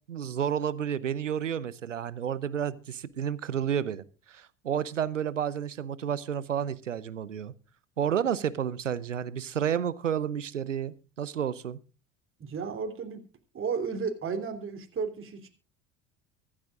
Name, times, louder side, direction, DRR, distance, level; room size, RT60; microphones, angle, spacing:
voice 1, 0.1-7.5 8.0-11.8, right 8 dB, 85° right, 19 dB, 0.8 m, -31 dB
voice 2, 12.4-13.2 13.5-15.5, right 5 dB, 35° right, 4 dB, 3.4 m, -33 dB
24.5 x 8.7 x 2.4 m, 0.33 s
figure-of-eight pair, 65°, 36 cm